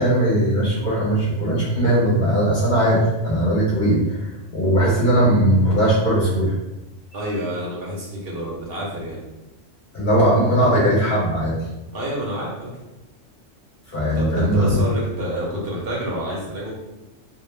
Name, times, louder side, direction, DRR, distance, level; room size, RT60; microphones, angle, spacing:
voice 1, 0.0-6.5 9.9-11.6 13.9-14.8, right 1 dB, 50° left, -6 dB, 0.7 m, -19 dB
voice 2, 7.1-9.2 11.9-12.7 14.1-16.7, right 1 dB, 60° right, -4 dB, 0.8 m, -28 dB
2.3 x 2.0 x 3.1 m, 1.0 s
omnidirectional pair, 1.2 m